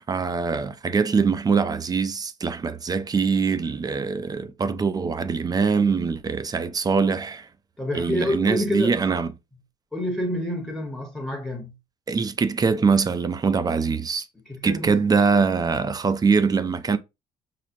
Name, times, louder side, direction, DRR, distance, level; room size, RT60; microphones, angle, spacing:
voice 1, 0.0-7.5 7.9-9.3 12.1-14.3 14.6-17.0, right 5 dB, 25° right, 0.4 m, -23 dB
voice 2, 7.8-8.9 9.9-11.7 14.5-15.0, left 1 dB, 5° left, 0.9 m, -28 dB
5.7 x 2.0 x 2.5 m
cardioid pair, 110°, 17 cm